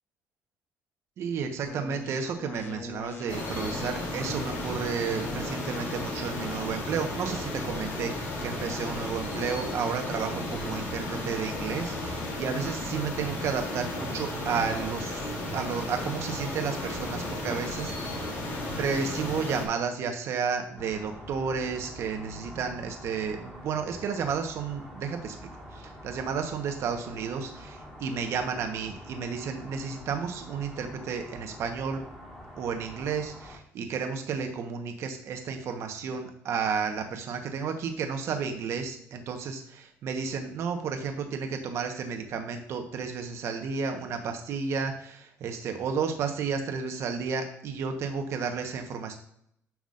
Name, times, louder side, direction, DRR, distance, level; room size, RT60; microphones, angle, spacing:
voice 1, 1.2-18.3 18.7-32.0 32.6-49.2, right 6 dB, 60° right, 5 dB, 1.1 m, -32 dB
sound 1, 1.6-6.6, left 3 dB, 45° left, 0.9 m, -42 dB
sound 2, 3.3-19.7, left 1 dB, 75° left, 2.1 m, -34 dB
sound 3, 20.8-33.6, equal, 5° left, 2.8 m, -46 dB
9.3 x 6.0 x 2.6 m, 0.70 s
cardioid pair, 125°, 5 cm